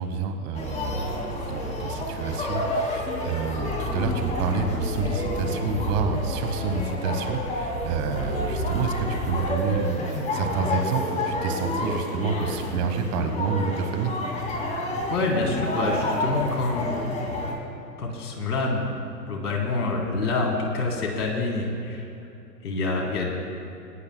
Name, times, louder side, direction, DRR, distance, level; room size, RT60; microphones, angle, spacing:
voice 1, 0.0-14.1, right 5 dB, 30° right, 6 dB, 1.2 m, -29 dB
sound 1, 0.5-17.5, left 1 dB, 15° left, 2.3 m, -29 dB
voice 2, 15.1-17.0 18.0-18.9 19.3-22.0 22.6-23.3, left 3 dB, 65° left, -1 dB, 3.6 m, -26 dB
19.5 x 18.0 x 2.2 m, 2.8 s
hypercardioid pair, 125°, 50 cm